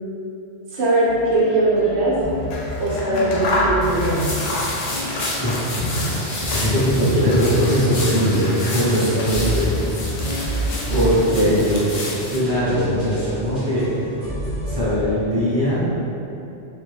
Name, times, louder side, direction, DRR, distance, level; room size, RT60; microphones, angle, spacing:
voice 1, 0.7-2.2 2.8-4.2 6.1-6.2 9.3-9.5 11.3-11.6, right 2 dB, 70° right, -7 dB, 1.0 m, -20 dB
sound 1, 1.0-15.3, equal, 50° right, 1.0 m, -30 dB
Scissors, 2.3-6.9 7.2-9.7, left 1 dB, 85° left, 0.9 m, -29 dB
sound 2, 3.8-12.4, left 1 dB, 60° left, 0.3 m, -29 dB
voice 2, 6.5-9.7 10.9-11.8 12.3-14.0 14.6-15.9, equal, 20° right, -14 dB, 0.8 m, -20 dB
2.7 x 2.6 x 3.3 m, 2.9 s
omnidirectional pair, 1.2 m